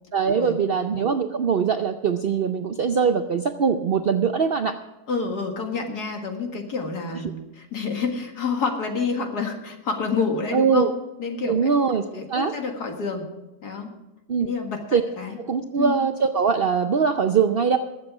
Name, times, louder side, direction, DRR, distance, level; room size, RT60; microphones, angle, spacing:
voice 1, 0.1-4.8 10.5-10.9 11.5-12.5 14.3-14.5 14.9-15.0 15.4-17.8, right 6 dB, 60° right, 7 dB, 0.6 m, -22 dB
voice 2, 5.1-10.9 11.2-11.7 12.1-13.3 13.6-13.9 14.4-15.4 15.8-16.0, left 4 dB, 75° left, 3 dB, 2.4 m, -28 dB
21.0 x 7.5 x 4.9 m, 1.0 s
omnidirectional pair, 1.7 m